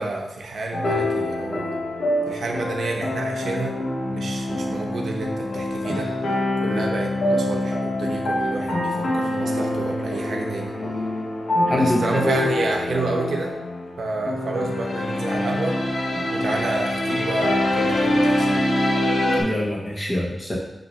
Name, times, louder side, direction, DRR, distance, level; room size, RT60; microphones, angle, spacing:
voice 1, 0.0-1.8 2.3-3.8 4.1-10.7 11.7-13.5 14.0-15.8 16.3-18.7, right 3 dB, 65° right, 1 dB, 0.8 m, -29 dB
sound 1, 0.7-19.4, left 1 dB, 85° left, 1.4 m, -25 dB
voice 2, 11.7-12.2 19.4-20.6, left 1 dB, 25° left, -3 dB, 1.2 m, -24 dB
5.9 x 2.9 x 5.5 m, 0.91 s
wide cardioid pair, 175°, 0 cm